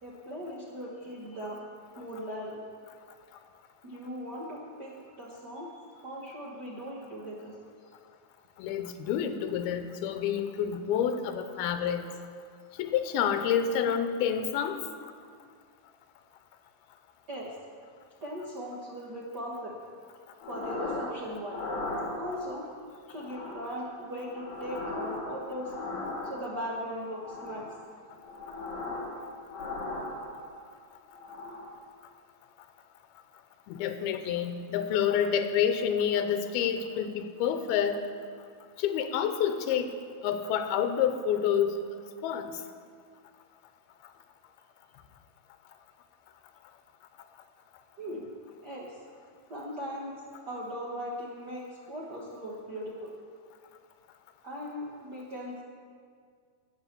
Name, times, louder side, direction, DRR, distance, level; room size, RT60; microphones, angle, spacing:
voice 1, 0.0-1.6 2.0-2.6 3.8-7.6 17.3-17.5 18.2-19.8 20.5-21.6 22.2-22.7 23.1-25.7 26.2-27.7 48.0-48.3 48.6-49.0 49.5-50.2 50.4-53.1 54.4-55.6, equal, 90° right, -4 dB, 0.9 m, -39 dB
voice 2, 8.6-12.1 12.8-14.8 33.7-38.0 38.8-39.9 40.2-41.7 42.2-42.5, left 8 dB, 90° left, 8 dB, 2.7 m, -28 dB
sound 1, 20.4-21.2 21.5-22.6 23.2-23.8 24.2-26.6 27.1-27.8 28.2-29.2 29.5-30.6 31.1-31.8, left 2 dB, 65° left, 3.8 m, -38 dB
12.5 x 9.1 x 7.4 m, 2.1 s
omnidirectional pair, 4.4 m